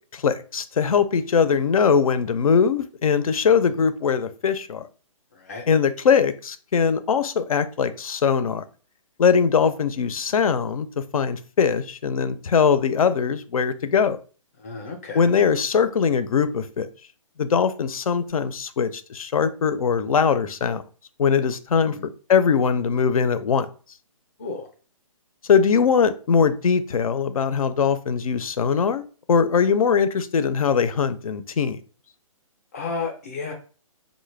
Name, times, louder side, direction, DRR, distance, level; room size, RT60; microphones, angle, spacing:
voice 1, 0.1-4.9 5.7-8.6 9.2-14.2 15.1-16.9 17.4-20.8 21.2-22.0 22.3-23.7 25.5-31.8, left 6 dB, 85° left, 12 dB, 0.5 m, -21 dB
voice 2, 14.6-15.3 21.9-22.1 24.4-24.7 32.7-33.5, left 4 dB, 25° left, 3 dB, 0.4 m, -32 dB
3.9 x 2.1 x 3.2 m, 0.39 s
hypercardioid pair, 160°, 18 cm